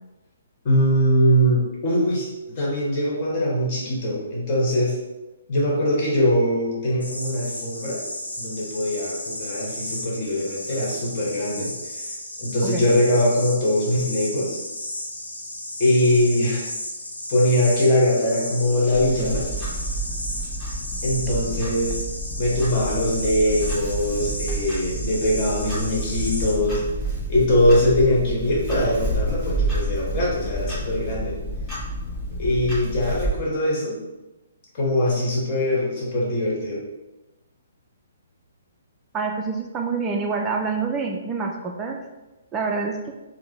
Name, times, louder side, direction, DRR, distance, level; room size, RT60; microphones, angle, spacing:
voice 1, 0.6-2.3 2.5-5.0 5.5-8.0 8.4-12.0 12.4-14.6 15.8-16.7 17.3-19.5 21.0-22.0 22.4-26.8 27.3-31.3 32.4-34.0 34.7-36.8, left 1 dB, 40° left, -4 dB, 1.2 m, -22 dB
sound 1, 7.0-26.5, left 1 dB, 85° left, 0.9 m, -34 dB
Clock, 18.9-33.3, right 1 dB, 10° left, 1.4 m, -29 dB
voice 2, 39.1-42.0 42.5-43.0, right 4 dB, 15° right, 1 dB, 0.3 m, -26 dB
3.6 x 2.0 x 3.2 m, 1.1 s
hypercardioid pair, 135°, 0 cm